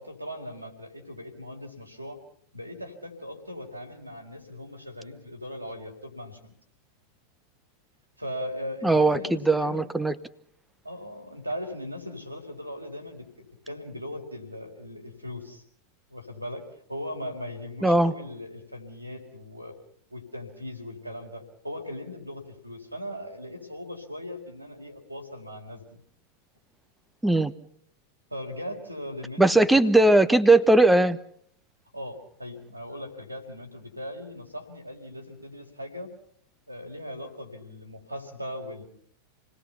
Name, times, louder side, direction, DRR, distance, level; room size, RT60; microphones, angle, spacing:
voice 1, 0.0-2.2 2.5-6.5 8.2-9.9 10.8-13.3 13.7-15.6 16.1-16.6 16.9-19.8 20.1-26.0 28.3-30.0 31.9-36.1 36.7-38.8, left 1 dB, 85° right, 2 dB, 4.4 m, -39 dB
voice 2, 8.8-10.2 17.8-18.1 27.2-27.5 29.4-31.2, right 2 dB, 5° right, 14 dB, 1.1 m, -19 dB
28.5 x 19.5 x 5.8 m, 0.65 s
figure-of-eight pair, 90°, 0 cm